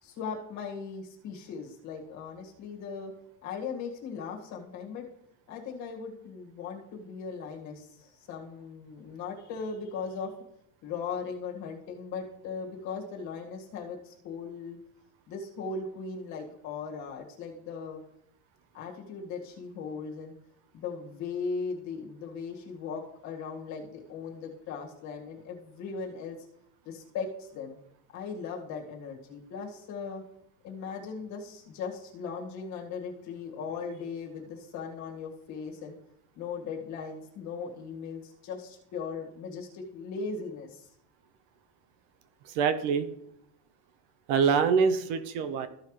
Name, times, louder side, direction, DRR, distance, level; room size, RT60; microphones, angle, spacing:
voice 1, 0.0-3.1 3.4-5.1 5.5-10.3 10.8-14.8 15.3-18.0 18.7-20.3 20.7-26.4 26.9-27.8 28.1-30.2 30.6-35.9 36.4-40.9, left 5 dB, 35° left, -1 dB, 2.0 m, -38 dB
voice 2, 42.4-43.1 44.3-45.7, right 6 dB, 55° right, 10 dB, 0.8 m, -25 dB
14.0 x 5.8 x 3.2 m, 0.74 s
cardioid pair, 180°, 47 cm